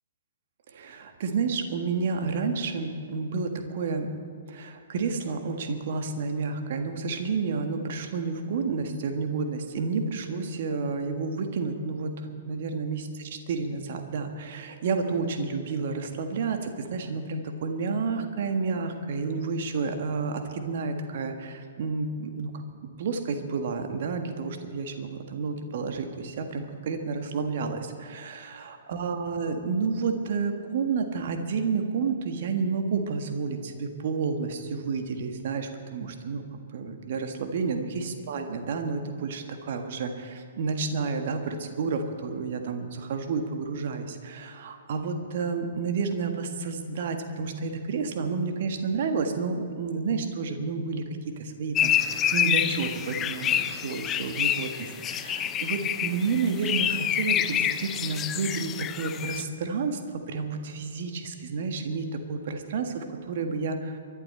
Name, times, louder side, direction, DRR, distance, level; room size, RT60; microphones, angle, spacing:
voice 1, 0.7-4.1 4.5-22.5 23.0-64.0, right 4 dB, 50° right, 6 dB, 1.7 m, -30 dB
sound 1, 51.8-59.4, left 10 dB, 20° left, 0.6 m, -27 dB
23.5 x 11.5 x 4.4 m, 2.4 s
figure-of-eight pair, 115°, 0 cm